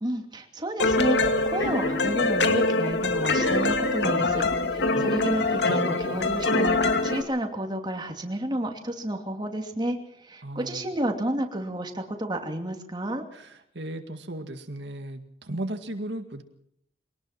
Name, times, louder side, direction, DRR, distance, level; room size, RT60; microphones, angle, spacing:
voice 1, 0.0-10.0 10.2-13.2, right 1 dB, 25° right, 3 dB, 2.7 m, -31 dB
sound 1, 0.8-7.2, left 2 dB, 80° left, 2.3 m, -24 dB
voice 2, 10.4-10.9 13.3-16.4, right 1 dB, 80° right, 6 dB, 2.1 m, -36 dB
24.0 x 18.5 x 6.0 m, 0.72 s
head